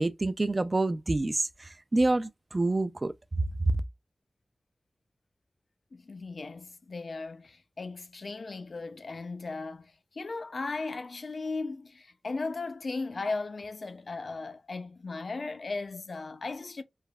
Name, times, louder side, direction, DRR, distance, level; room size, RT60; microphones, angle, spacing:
voice 1, 0.0-1.5 1.9-3.1, right 2 dB, 40° right, 0.3 m, -27 dB
voice 2, 5.9-16.8, left 3 dB, 70° left, 0.4 m, -37 dB
3.3 x 2.0 x 2.2 m
wide cardioid pair, 60°, 0 cm